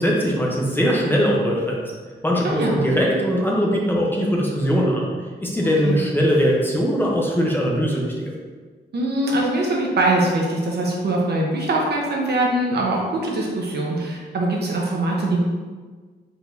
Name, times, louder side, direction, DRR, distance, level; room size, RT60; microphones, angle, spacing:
voice 1, 0.0-1.8 2.2-5.1 5.4-8.3, equal, 10° left, -3 dB, 0.8 m, -20 dB
voice 2, 2.4-2.8 5.8-5.9 8.9-15.4, right 2 dB, 60° right, -2 dB, 1.0 m, -22 dB
4.4 x 4.2 x 2.7 m, 1.4 s
wide cardioid pair, 110°, 19 cm